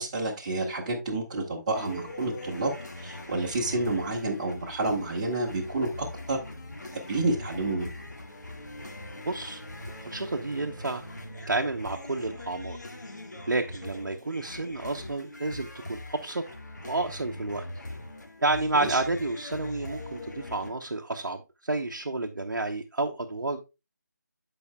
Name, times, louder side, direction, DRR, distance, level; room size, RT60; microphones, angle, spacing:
voice 1, 0.0-2.7 3.0-6.4 6.9-8.0 18.8-19.0, right 2 dB, 20° right, -2 dB, 1.5 m, -29 dB
sound 1, 1.7-20.7, left 1 dB, 65° left, 1.7 m, -42 dB
voice 2, 9.2-9.6 10.0-11.1 11.5-12.8 13.5-16.4 16.8-17.7 18.4-23.7, right 2 dB, 75° right, 3 dB, 0.8 m, -30 dB
13.5 x 5.0 x 2.2 m, 0.27 s
figure-of-eight pair, 160°, 10 cm